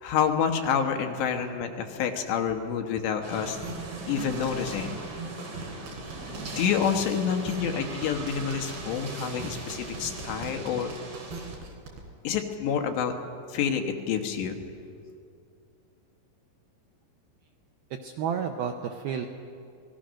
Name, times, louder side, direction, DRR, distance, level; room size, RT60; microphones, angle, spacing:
voice 1, 0.0-3.6 4.1-5.0 6.3-10.9 12.3-13.1 13.5-14.6, left 7 dB, 70° left, 4 dB, 3.4 m, -28 dB
sound 1, 3.2-11.6, right 2 dB, 35° right, 3.6 m, -39 dB
sound 2, 3.5-12.0, right 4 dB, 60° right, 4.8 m, -42 dB
voice 2, 18.0-19.3, right 7 dB, 80° right, 4 dB, 2.2 m, -31 dB
27.5 x 20.0 x 6.4 m, 2.5 s
omnidirectional pair, 5.5 m